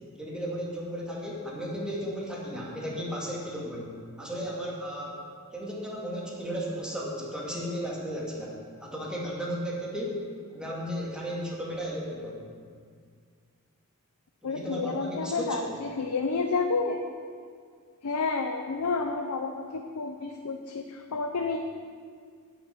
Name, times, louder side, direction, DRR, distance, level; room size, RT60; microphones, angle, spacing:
voice 1, 0.2-5.2 5.5-10.2 10.5-12.4 14.4-15.8, equal, 5° right, -4 dB, 2.1 m, -35 dB
voice 2, 14.4-17.0 18.0-21.6, left 4 dB, 85° left, 5 dB, 0.7 m, -30 dB
8.9 x 7.2 x 8.6 m, 2.1 s
head